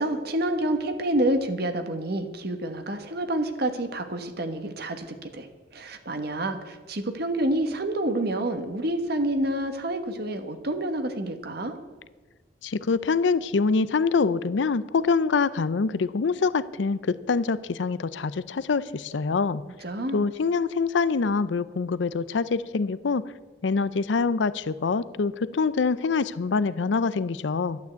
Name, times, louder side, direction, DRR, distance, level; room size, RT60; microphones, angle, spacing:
voice 1, 0.0-5.1 5.3-5.5 5.7-11.8 19.8-20.2, right 1 dB, 60° right, 7 dB, 1.3 m, -28 dB
voice 2, 12.6-19.6 20.1-23.2 23.6-27.8, left 4 dB, 80° left, 17 dB, 0.5 m, -25 dB
12.0 x 9.3 x 8.1 m, 1.2 s
head